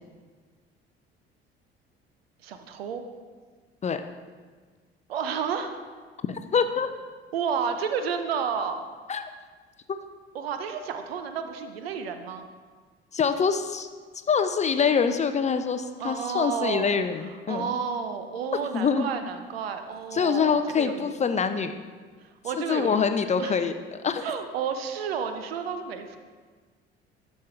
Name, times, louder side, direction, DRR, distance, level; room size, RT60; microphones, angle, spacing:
voice 1, 2.4-3.0 5.1-5.7 7.3-8.8 10.3-12.5 16.0-16.9 17.5-21.1 22.2-23.1 23.4-23.6 24.2-26.2, right 6 dB, 75° right, 8 dB, 0.7 m, -31 dB
voice 2, 6.3-6.9 9.1-9.2 13.1-13.9 14.3-17.7 18.7-19.1 20.1-21.7 22.7-24.2, left 6 dB, 25° left, 9 dB, 0.5 m, -25 dB
11.0 x 5.4 x 4.3 m, 1.5 s
figure-of-eight pair, 55°, 31 cm